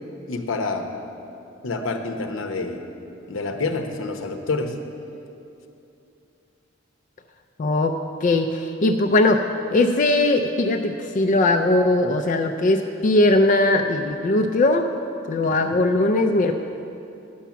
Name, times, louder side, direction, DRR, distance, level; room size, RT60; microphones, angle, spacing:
voice 1, 0.3-0.9 1.6-2.8 3.3-4.7 15.4-15.8, left 3 dB, 80° left, 5 dB, 0.8 m, -28 dB
voice 2, 7.6-9.4 9.7-14.9 15.3-16.6, left 2 dB, 40° left, 5 dB, 0.4 m, -20 dB
10.0 x 5.8 x 7.2 m, 2.7 s
head